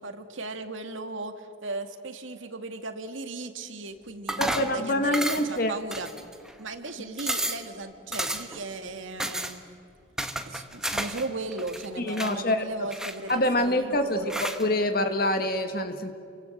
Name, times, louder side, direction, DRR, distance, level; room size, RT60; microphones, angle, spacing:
voice 1, 0.0-6.1 6.6-9.6 10.5-14.6, right 3 dB, 75° right, 7 dB, 2.1 m, -37 dB
sound 1, 4.3-4.8 5.1-5.6 5.9-6.5 6.9-7.0 7.2-7.7 8.1-8.6 9.2-9.5 10.2-11.2 11.5-12.3 12.9-13.6 14.3-14.6, right 1 dB, 5° right, 1.2 m, -31 dB
voice 2, 4.4-5.7 12.0-12.9 13.3-16.1, left 1 dB, 50° left, 7 dB, 1.8 m, -26 dB
29.0 x 23.5 x 8.0 m, 2.4 s
head